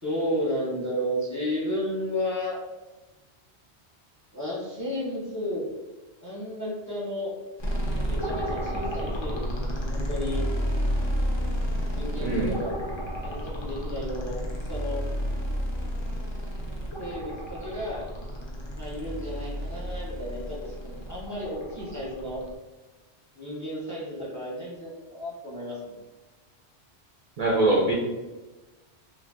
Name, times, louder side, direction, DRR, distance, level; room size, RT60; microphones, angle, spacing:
voice 1, 0.0-2.6 4.3-5.6 6.2-7.3 8.1-10.5 11.9-12.8 13.2-14.4 14.7-15.0 17.0-18.0 18.7-22.4 23.4-26.0, left 1 dB, 20° left, -6 dB, 0.7 m, -33 dB
sound 1, 7.6-22.5, equal, 45° left, 0.3 m, -31 dB
voice 2, 12.2-12.6 27.4-27.9, right 2 dB, 55° right, -3 dB, 0.4 m, -23 dB
2.5 x 2.3 x 3.6 m, 1.1 s
omnidirectional pair, 1.1 m